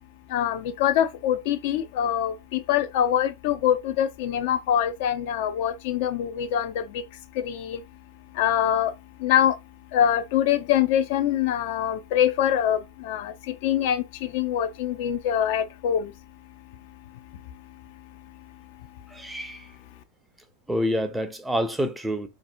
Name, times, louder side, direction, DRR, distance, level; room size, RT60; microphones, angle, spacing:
voice 1, 0.3-7.0 7.3-7.8 8.3-8.9 9.2-9.6 9.9-16.1, left 10 dB, 50° left, 0.4 m, -24 dB
voice 2, 19.1-19.7 20.7-22.3, equal, 5° right, 0.5 m, -27 dB
4.0 x 2.6 x 2.4 m
figure-of-eight pair, 90°, 0 cm